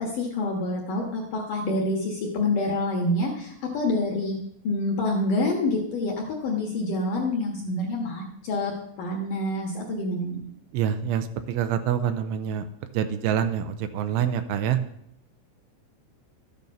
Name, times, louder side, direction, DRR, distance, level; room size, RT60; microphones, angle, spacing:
voice 1, 0.0-4.4 4.6-6.1 6.4-8.7 9.0-10.5, left 2 dB, 65° left, 0 dB, 2.2 m, -27 dB
voice 2, 10.7-12.6 12.9-14.8, right 9 dB, 85° right, 9 dB, 3.1 m, -26 dB
13.5 x 9.3 x 5.3 m, 0.73 s
omnidirectional pair, 5.7 m